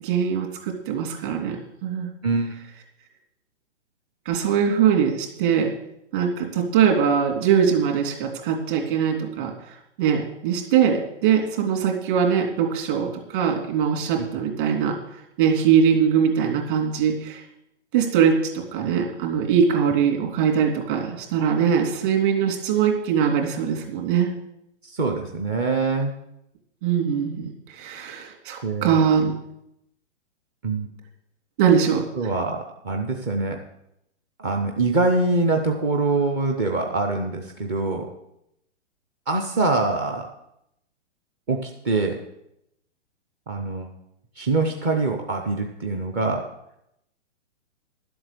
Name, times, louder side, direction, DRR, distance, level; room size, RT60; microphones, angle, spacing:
voice 1, 0.0-2.1 4.2-5.7 6.1-17.4 17.9-24.3 26.8-29.3 31.6-32.0, right 7 dB, 45° right, 1 dB, 3.0 m, -22 dB
voice 2, 24.8-26.1 28.6-29.0 30.6-30.9 32.2-33.6 34.4-38.1 39.3-40.3 41.5-42.2 43.5-43.9 44.4-46.5, right 3 dB, 15° right, 2 dB, 0.4 m, -24 dB
11.5 x 7.8 x 6.7 m, 0.80 s
hypercardioid pair, 150°, 37 cm